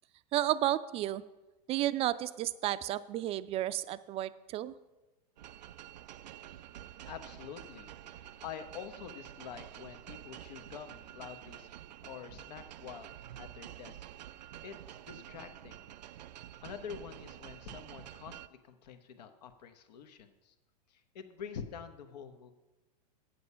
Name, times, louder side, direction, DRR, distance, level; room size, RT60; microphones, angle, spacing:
voice 1, 0.3-1.2 1.7-4.7, right 13 dB, 30° right, 15 dB, 0.4 m, -32 dB
sound 1, 5.4-18.5, right 12 dB, 90° right, 0.4 m, -49 dB
voice 2, 7.0-11.7 12.0-13.1 13.4-14.0 14.6-15.9 16.6-20.5 20.9-22.5, left 7 dB, 75° left, 9 dB, 1.1 m, -47 dB
8.4 x 8.0 x 5.6 m, 1.1 s
hypercardioid pair, 125°, 21 cm